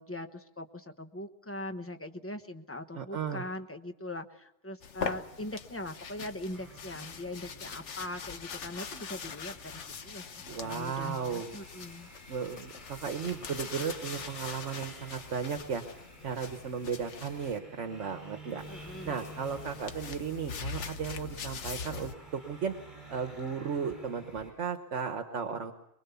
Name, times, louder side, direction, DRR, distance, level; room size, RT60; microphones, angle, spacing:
voice 1, 0.0-12.1 18.7-19.2, left 1 dB, 10° left, 6 dB, 1.1 m, -41 dB
voice 2, 2.9-3.4 10.5-11.5 12.3-22.7 23.1-25.7, right 6 dB, 75° right, 6 dB, 1.5 m, -35 dB
sound 1, 4.8-17.6 18.6-22.1, left 6 dB, 75° left, 1.3 m, -42 dB
sound 2, 6.5-24.5, right 2 dB, 25° right, 7.9 m, -52 dB
23.0 x 22.0 x 7.0 m, 0.80 s
omnidirectional pair, 1.2 m